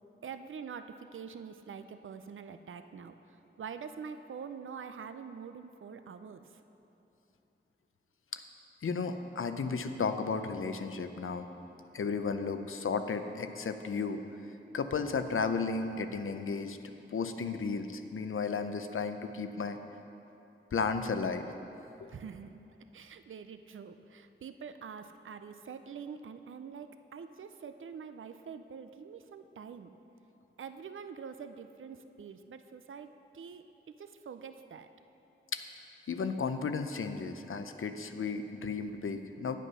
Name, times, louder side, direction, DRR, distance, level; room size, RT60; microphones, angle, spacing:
voice 1, 0.2-6.5 22.1-22.6 22.9-29.9 30.6-34.9, right 6 dB, 75° right, 9 dB, 0.4 m, -45 dB
voice 2, 8.8-11.5 11.9-14.2 14.7-16.8 17.1-19.8 20.7-21.5 22.0-22.1 35.5-35.6 36.1-39.6, left 5 dB, 80° left, 8 dB, 0.6 m, -34 dB
9.2 x 8.3 x 5.5 m, 2.9 s
wide cardioid pair, 65°, 21 cm